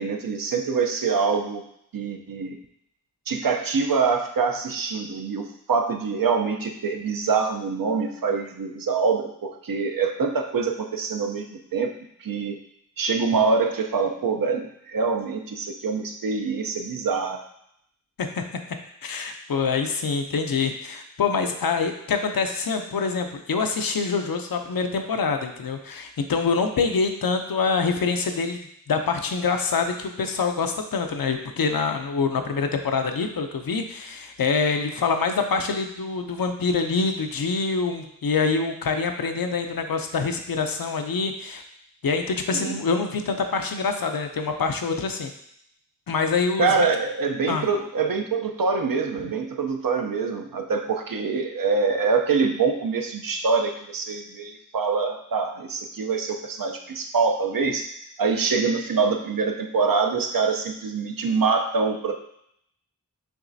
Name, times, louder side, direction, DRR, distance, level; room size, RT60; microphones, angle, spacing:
voice 1, 0.0-1.6 1.9-2.6 3.3-11.9 12.2-12.6 13.0-17.4 42.5-42.8 46.6-57.9 58.2-62.2, right 4 dB, 85° right, 4 dB, 0.6 m, -25 dB
voice 2, 19.0-41.6 42.0-45.3 46.1-46.7 47.5-47.7, left 4 dB, 90° left, 5 dB, 0.6 m, -25 dB
5.9 x 3.2 x 2.6 m, 0.73 s
wide cardioid pair, 55°, 34 cm